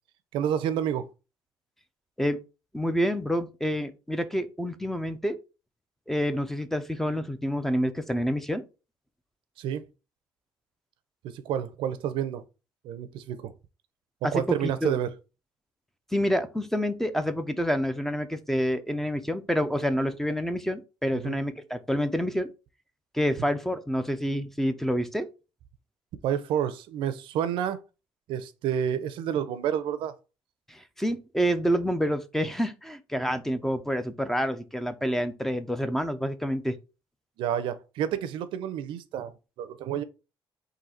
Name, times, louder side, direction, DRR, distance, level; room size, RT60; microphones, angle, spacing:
voice 1, 0.3-1.1 9.6-9.8 11.2-12.4 12.8-13.5 14.3-15.1 21.1-21.4 26.2-27.8 28.3-30.1 37.4-39.3 39.6-40.0, right 9 dB, 80° right, 0.5 m, -29 dB
voice 2, 2.7-5.4 6.1-8.6 14.2-14.9 16.1-22.5 23.1-25.3 30.7-36.8, equal, 5° left, 0.4 m, -28 dB
3.9 x 2.7 x 4.1 m
cardioid pair, 125°, 9 cm